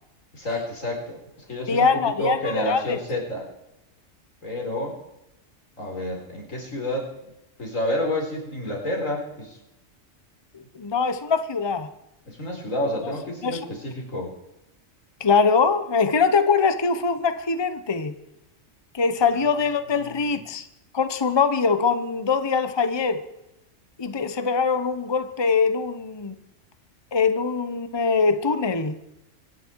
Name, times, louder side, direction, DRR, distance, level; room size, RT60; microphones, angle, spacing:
voice 1, 0.3-1.9 2.2-3.5 4.4-5.0 5.8-7.1 7.6-9.6 12.3-14.3 19.3-19.4 19.9-20.4, left 1 dB, 90° left, 0 dB, 4.7 m, -29 dB
voice 2, 1.7-3.0 10.5-11.9 13.0-13.1 13.4-13.6 15.2-18.1 18.9-20.6 20.9-23.3 24.0-26.3 27.1-28.9, left 5 dB, 25° left, 10 dB, 0.9 m, -22 dB
24.5 x 11.0 x 4.7 m, 0.86 s
omnidirectional pair, 1.3 m